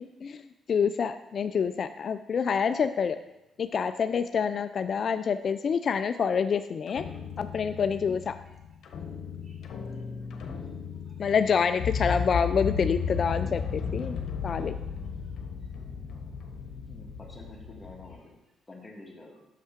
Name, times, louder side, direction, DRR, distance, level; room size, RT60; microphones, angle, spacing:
voice 1, 0.0-3.2 3.6-7.1 7.4-8.3 11.2-14.2 14.4-14.7, left 6 dB, 50° left, 10 dB, 0.3 m, -27 dB
sound 1, 6.9-18.2, left 6 dB, 70° left, 1.0 m, -35 dB
voice 2, 10.0-10.6 16.9-18.3 18.7-19.4, left 2 dB, 20° left, 0 dB, 1.6 m, -49 dB
voice 3, 14.5-14.8 15.2-16.3, right 2 dB, 40° right, -3 dB, 2.7 m, -60 dB
6.7 x 5.4 x 5.1 m, 0.95 s
cardioid pair, 90°, 0 cm